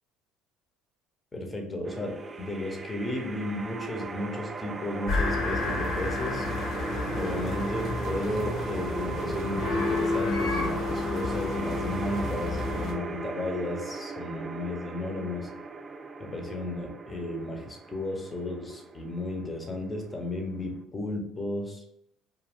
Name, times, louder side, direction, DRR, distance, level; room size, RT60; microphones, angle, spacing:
voice 1, 1.3-6.5 7.1-15.5 16.2-21.8, left 1 dB, 25° left, 2 dB, 0.8 m, -34 dB
sound 1, 1.8-20.8, right 3 dB, 30° right, 0.3 m, -37 dB
sound 2, 5.1-12.9, left 3 dB, 55° left, 1.0 m, -30 dB
2.5 x 2.4 x 3.4 m, 0.77 s
hypercardioid pair, 65°, 0 cm